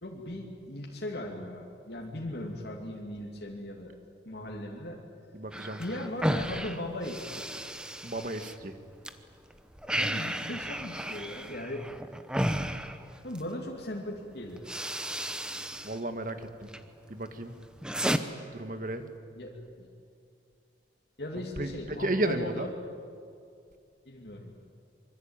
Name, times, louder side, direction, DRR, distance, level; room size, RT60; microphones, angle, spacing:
voice 1, 0.0-4.0 4.2-5.0 5.8-7.4 9.9-11.9 13.2-14.7 19.4-19.9 21.2-22.8 24.0-24.5, left 1 dB, 65° left, -1 dB, 2.9 m, -38 dB
voice 2, 5.3-5.8 8.0-8.7 15.8-16.7 17.1-17.5 18.5-19.1 21.6-22.7, right 1 dB, 45° right, 8 dB, 1.8 m, -33 dB
sound 1, 5.5-9.1 9.5-13.5 14.2-14.3 14.6-16.0 16.3-16.8 17.3-18.2, equal, 5° right, 1.0 m, -33 dB
26.0 x 24.5 x 9.0 m, 2.3 s
head